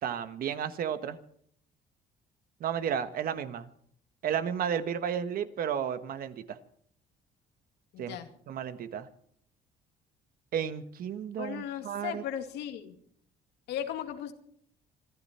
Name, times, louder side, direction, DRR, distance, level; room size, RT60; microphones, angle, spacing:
voice 1, 0.0-1.2 2.6-3.7 4.2-6.6 8.0-8.2 8.5-9.1 10.5-12.2, right 8 dB, 60° right, 11 dB, 1.4 m, -33 dB
voice 2, 7.9-8.3 11.4-13.0 13.7-14.3, left 10 dB, 85° left, 6 dB, 2.2 m, -36 dB
25.5 x 12.5 x 4.4 m, 0.63 s
cardioid pair, 110°, 17 cm